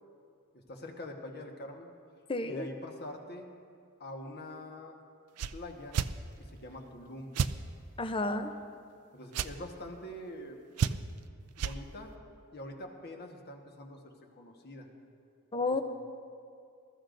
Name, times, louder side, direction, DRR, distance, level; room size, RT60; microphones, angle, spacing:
voice 1, 0.5-1.9 2.4-3.5 4.0-5.0 5.5-6.0 6.4-7.3 9.1-10.6 11.5-12.1 12.5-14.9 15.6-15.8, left 1 dB, 50° left, 2 dB, 1.3 m, -44 dB
voice 2, 2.3-2.7 8.0-8.5 15.5-15.8, left 2 dB, 25° left, 9 dB, 0.6 m, -31 dB
sound 1, 5.4-5.5 5.9-6.1 7.3-7.5 9.3-9.5 10.8-11.2 11.6-11.8, right 7 dB, 90° right, 0.4 m, -30 dB
20.5 x 13.0 x 2.6 m, 2.4 s
head